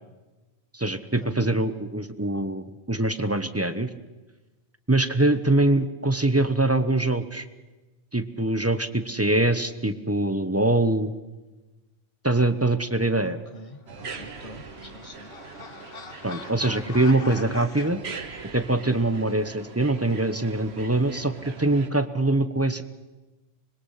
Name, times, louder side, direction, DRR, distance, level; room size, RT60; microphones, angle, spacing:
voice 1, 0.7-3.9 4.9-7.5 8.1-11.1 12.2-13.4 16.2-18.0 18.5-22.8, right 2 dB, 15° right, 11 dB, 0.9 m, -23 dB
voice 2, 13.2-15.3, left 2 dB, 30° left, 7 dB, 1.7 m, -45 dB
sound 1, 13.9-21.9, right 5 dB, 60° right, 1.6 m, -42 dB
sound 2, 14.0-17.9, left 4 dB, 50° left, 1.6 m, -42 dB
25.5 x 21.5 x 5.7 m, 1.2 s
omnidirectional pair, 1.2 m